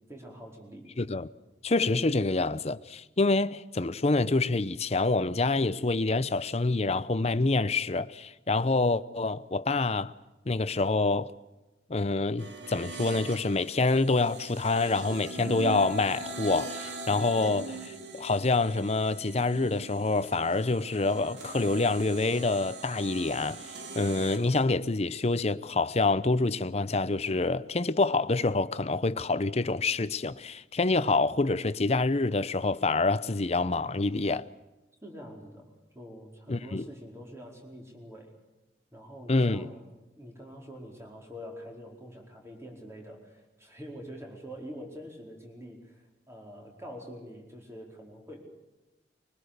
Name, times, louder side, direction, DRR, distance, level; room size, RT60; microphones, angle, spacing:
voice 1, 0.1-0.9 35.0-38.3 38.9-39.9 40.2-48.4, equal, 15° right, 4.5 m, -45 dB
voice 2, 1.0-1.3 1.6-10.1 10.5-11.3 11.9-34.5 36.5-36.8 39.3-39.7, left 3 dB, 35° left, 0.7 m, -27 dB
sound 1, 12.4-24.6, right 3 dB, 90° right, 2.7 m, -42 dB
23.0 x 20.5 x 6.7 m
head